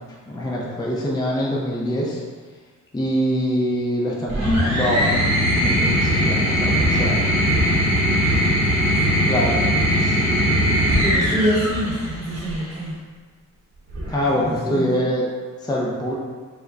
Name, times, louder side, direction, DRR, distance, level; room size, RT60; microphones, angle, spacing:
voice 1, 0.3-2.2 2.9-5.1 5.5-7.4 8.2-8.4 9.3-9.6 10.0-10.6 14.1-15.2 15.6-16.1, equal, 10° left, -3 dB, 0.6 m, -24 dB
sound 1, 4.3-12.7 13.9-14.5, equal, 50° right, 1.1 m, -20 dB
voice 2, 7.8-8.4 8.8-9.4 10.9-13.0 14.2-15.0, right 1 dB, 15° right, -7 dB, 1.0 m, -27 dB
4.9 x 2.2 x 3.8 m, 1.5 s
cardioid pair, 105°, 33 cm